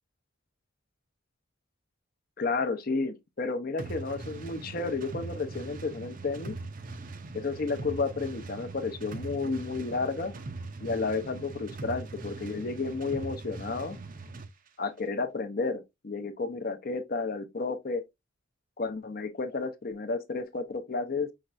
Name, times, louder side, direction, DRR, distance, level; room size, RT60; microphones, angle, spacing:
voice 1, 2.4-6.6 7.3-10.3 10.8-14.0 14.8-18.0 18.8-21.3, left 3 dB, 45° left, 0.6 m, -32 dB
sound 1, 3.8-14.5, right 3 dB, 40° right, 0.6 m, -41 dB
5.7 x 3.2 x 2.4 m
head